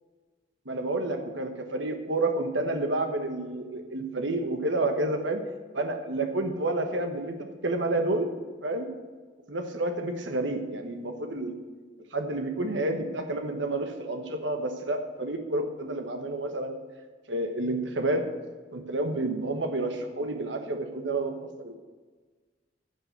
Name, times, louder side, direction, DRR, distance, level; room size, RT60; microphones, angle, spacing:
voice 1, 0.6-5.4 5.7-8.3 8.6-8.9 9.5-11.6 12.1-16.7 17.3-18.2 18.7-21.8, right 2 dB, 75° right, 5 dB, 1.3 m, -29 dB
15.0 x 5.6 x 6.8 m, 1.4 s
head